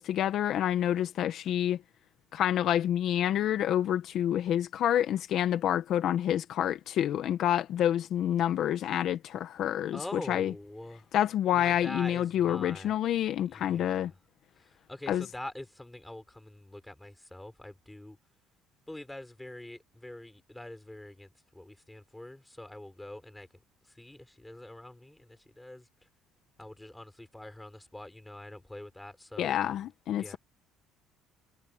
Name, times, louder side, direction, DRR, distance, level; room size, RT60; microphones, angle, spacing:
voice 1, 0.0-1.8 2.3-10.0 10.3-10.5 11.1-14.1 15.1-15.2 29.4-30.4, left 11 dB, 60° left, 1.3 m, -28 dB
voice 2, 9.9-11.1 11.5-13.0 13.5-14.2 14.5-18.2 18.9-26.1 26.6-29.8 30.1-30.4, left 1 dB, 5° left, 4.9 m, -45 dB
cardioid pair, 115°, 0 cm